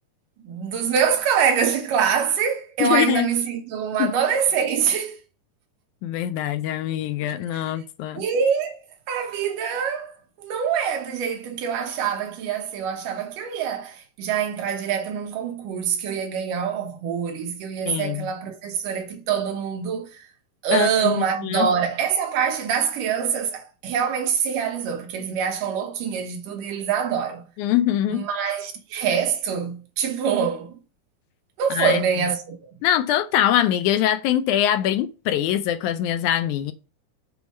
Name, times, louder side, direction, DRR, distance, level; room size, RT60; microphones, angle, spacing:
voice 1, 0.4-5.2 7.3-7.7 8.2-8.8 9.1-20.3 20.6-27.4 28.1-30.8 31.6-32.6, right 7 dB, 75° right, 2.7 m, -25 dB
voice 2, 2.8-3.3 4.0-4.1 6.0-8.2 17.9-18.3 20.7-21.7 27.6-28.3 31.7-32.0 32.8-36.7, left 11 dB, 85° left, 1.7 m, -23 dB
7.0 x 4.6 x 5.4 m
omnidirectional pair, 3.9 m